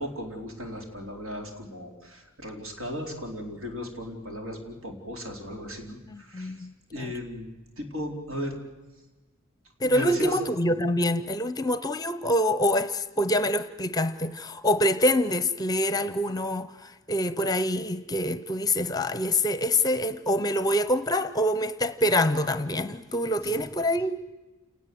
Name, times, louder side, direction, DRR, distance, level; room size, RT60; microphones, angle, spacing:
voice 1, 0.0-6.5 6.9-7.5 7.8-8.6 9.8-10.3 10.8-10.9, left 1 dB, 75° right, 4.1 m, -36 dB
voice 2, 6.1-7.1 9.8-24.3, left 1 dB, 15° left, 0.7 m, -26 dB
29.0 x 19.0 x 7.8 m
head